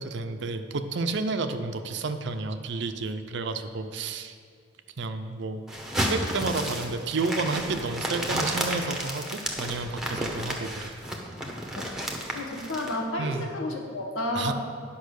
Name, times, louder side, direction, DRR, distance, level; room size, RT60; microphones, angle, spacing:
voice 1, 0.0-4.4 5.0-5.6 6.0-10.9 13.2-13.5 14.3-14.5, right 3 dB, 55° right, 8 dB, 0.5 m, -31 dB
sound 1, 5.7-12.9, equal, ahead, 0.9 m, -32 dB
voice 2, 12.3-14.5, left 1 dB, 80° left, 0 dB, 1.5 m, -31 dB
10.5 x 5.5 x 6.4 m, 2.1 s
head